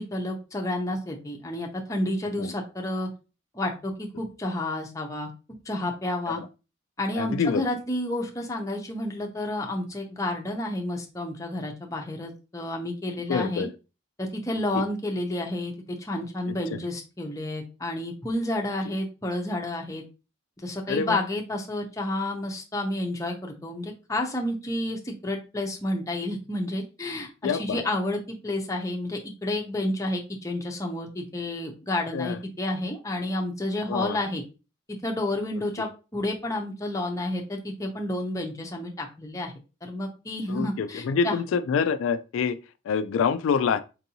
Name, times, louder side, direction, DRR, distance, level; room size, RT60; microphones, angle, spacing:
voice 1, 0.0-3.1 3.5-5.3 5.7-6.4 7.0-13.7 14.2-20.0 20.6-34.4 35.0-39.5 39.8-41.4, left 1 dB, 15° left, 0.6 m, -30 dB
voice 2, 7.1-7.6 13.3-13.7 14.7-14.8 16.5-16.8 20.9-21.2 27.4-27.8 32.1-32.4 33.9-34.2 40.5-42.6 42.9-43.8, left 6 dB, 80° left, 0.3 m, -26 dB
4.5 x 2.6 x 2.8 m
head